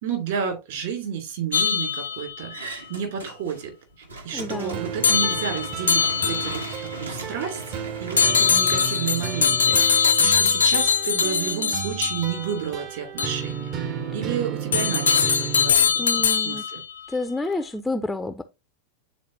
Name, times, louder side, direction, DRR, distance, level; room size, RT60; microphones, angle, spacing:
voice 1, 0.0-3.7 4.2-13.7 14.1-16.8, right 7 dB, 55° right, 2.8 m, -31 dB
sound 1, 1.5-2.5 5.0-6.8 8.2-12.5 13.2-13.4 14.7-16.8, left 6 dB, 70° left, 0.4 m, -22 dB
sound 2, 2.5-3.6 3.9-9.3, right 3 dB, 75° right, 1.2 m, -37 dB
voice 2, 4.3-4.8 16.0-16.6 17.1-18.4, left 2 dB, 5° left, 0.4 m, -29 dB
sound 3, 4.7-15.7, right 7 dB, 35° right, 0.7 m, -33 dB
9.2 x 4.1 x 2.6 m
figure-of-eight pair, 90°, 0 cm